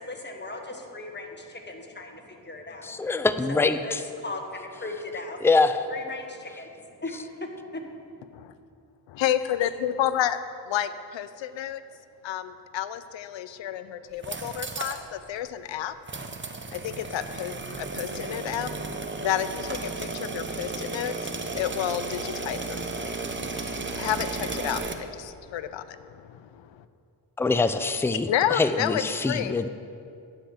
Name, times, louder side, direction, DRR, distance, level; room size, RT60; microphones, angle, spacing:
voice 1, 0.0-3.0 3.5-5.4 5.9-6.7 7.0-7.1, left 3 dB, 25° left, 2 dB, 1.5 m, -38 dB
voice 2, 2.8-4.0 5.4-5.8 27.4-28.3 28.6-29.7, left 3 dB, 5° left, 10 dB, 0.4 m, -24 dB
voice 3, 9.2-10.4 10.7-11.8 12.2-15.9 16.7-18.7 19.2-23.2 23.9-26.8 28.3-29.6, left 11 dB, 75° left, 13 dB, 0.6 m, -30 dB
sound 1, 14.1-15.0 15.4-15.5 16.1-24.9, right 3 dB, 25° right, 0.8 m, -34 dB
9.9 x 5.2 x 7.3 m, 2.5 s
cardioid pair, 50°, 45 cm